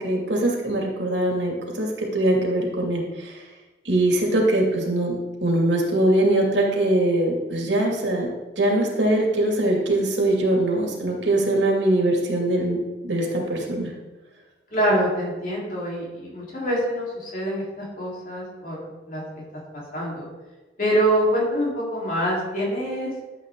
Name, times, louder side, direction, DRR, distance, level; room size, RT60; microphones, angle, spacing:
voice 1, 0.0-3.3 3.9-5.2 5.4-8.3 8.6-12.8 13.0-13.9, right 1 dB, 75° right, -1 dB, 2.4 m, -22 dB
voice 2, 14.7-18.8 19.1-19.2 19.9-20.2 20.8-23.1, right 1 dB, 45° left, -5 dB, 3.8 m, -25 dB
12.5 x 8.0 x 3.8 m, 1.2 s
head